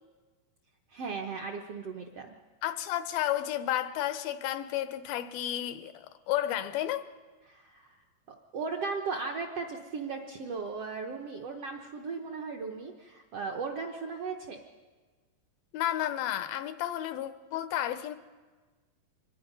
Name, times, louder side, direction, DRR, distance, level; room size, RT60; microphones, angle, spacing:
voice 1, 0.9-2.3 7.5-8.0 8.3-14.6, right 4 dB, 65° right, 1.5 m, -37 dB
voice 2, 2.6-7.1 15.7-18.2, left 12 dB, 85° left, 2.6 m, -32 dB
25.0 x 19.5 x 5.4 m
omnidirectional pair, 4.2 m